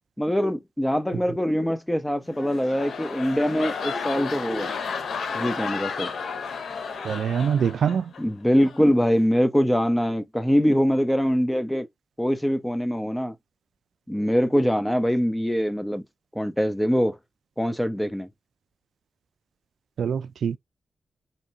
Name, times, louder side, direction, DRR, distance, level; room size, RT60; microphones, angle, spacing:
voice 1, 0.2-4.7 5.3-6.1 8.2-11.9 12.2-13.3 14.1-16.0 16.3-17.2 17.6-18.3, equal, 5° left, 0.8 m, -23 dB
sound 1, 2.2-8.2 8.6-8.9, left 5 dB, 80° left, 0.8 m, -32 dB
voice 2, 7.0-8.1 20.0-20.6, right 7 dB, 85° right, 0.3 m, -24 dB
4.4 x 2.8 x 2.5 m
cardioid pair, 85°, 0 cm